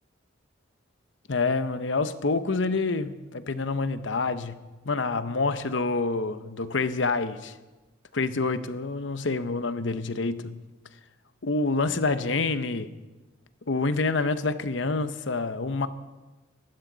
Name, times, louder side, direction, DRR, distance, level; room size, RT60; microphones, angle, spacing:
voice 1, 1.3-7.5 8.1-10.6 11.4-12.9 13.7-15.9, left 3 dB, 65° left, 11 dB, 0.8 m, -27 dB
25.0 x 12.0 x 4.0 m, 1.2 s
head